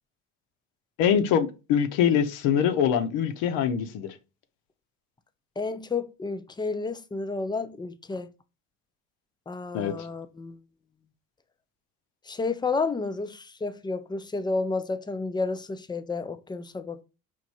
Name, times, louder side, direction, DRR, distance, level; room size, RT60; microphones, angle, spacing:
voice 1, 1.0-4.1 9.7-10.1, left 8 dB, 75° left, 0.8 m, -24 dB
voice 2, 5.6-8.3 9.5-10.6 12.3-17.0, left 3 dB, 10° left, 0.4 m, -31 dB
4.8 x 2.6 x 4.0 m
supercardioid pair, 75°, 44 cm